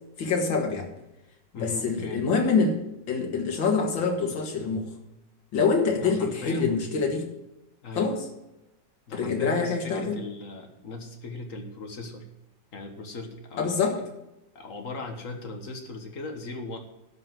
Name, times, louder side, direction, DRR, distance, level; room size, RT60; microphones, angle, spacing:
voice 1, 0.2-0.9 1.6-2.8 3.1-4.9 5.5-7.3 8.0-8.2 9.1-10.2 13.6-14.0, left 4 dB, 90° left, 3 dB, 2.3 m, -25 dB
voice 2, 1.5-2.2 6.0-6.8 7.8-8.1 9.1-12.3 12.7-13.8 14.6-16.8, left 3 dB, 45° left, 4 dB, 1.7 m, -38 dB
12.0 x 5.5 x 7.6 m, 0.93 s
omnidirectional pair, 2.0 m